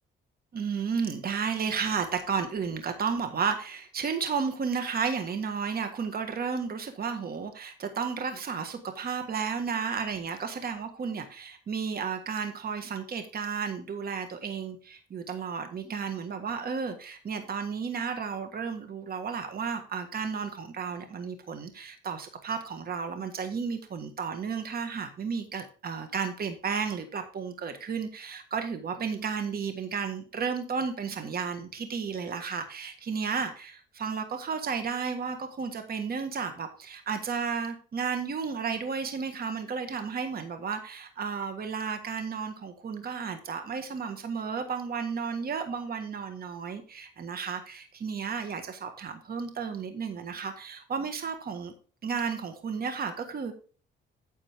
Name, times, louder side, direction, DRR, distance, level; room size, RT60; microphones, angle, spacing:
voice 1, 0.5-51.7 52.0-53.5, right 6 dB, 50° right, 7 dB, 1.6 m, -33 dB
9.7 x 7.4 x 3.5 m, 0.38 s
cardioid pair, 90°, 20 cm